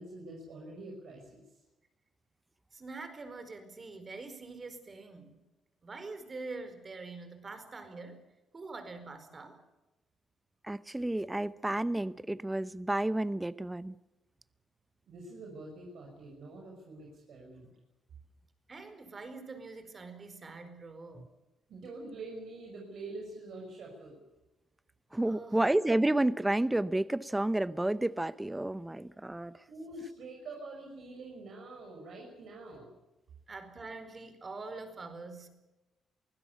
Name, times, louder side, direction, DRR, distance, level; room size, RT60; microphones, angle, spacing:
voice 1, 0.0-1.6 15.1-17.7 21.7-24.2 29.7-32.9, right 2 dB, 70° right, 5.9 m, -46 dB
voice 2, 2.7-5.4 5.8-8.2 8.5-9.6 18.7-21.3 25.2-25.7 33.5-35.5, right 3 dB, 35° right, 4.6 m, -45 dB
voice 3, 10.7-13.9 25.1-29.5, right 1 dB, 10° right, 0.8 m, -30 dB
24.0 x 16.5 x 8.4 m
cardioid pair, 90°, 0 cm